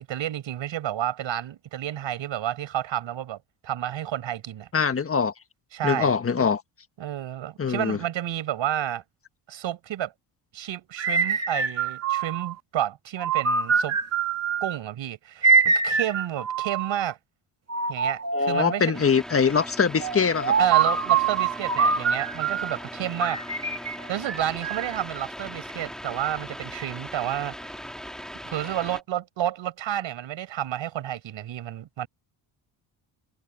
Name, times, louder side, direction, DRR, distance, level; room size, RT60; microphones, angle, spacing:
voice 1, 0.0-3.4 3.6-4.7 5.7-6.1 7.0-9.0 9.5-10.1 10.5-14.0 14.6-17.2 17.9-19.1 20.6-23.4 24.1-27.7 28.4-32.1, right 11 dB, 70° right, 5.6 m, -30 dB
voice 2, 4.7-5.3 5.8-6.6 7.6-8.0 18.3-20.6, left 6 dB, 30° left, 1.5 m, -23 dB
sound 1, 11.0-12.6 13.2-14.8 15.4-17.0 17.7-18.9 20.0-22.8 23.2-25.0, right 5 dB, 30° right, 2.2 m, -24 dB
sound 2, 18.9-29.0, equal, ahead, 3.3 m, -39 dB
cardioid pair, 115°, 47 cm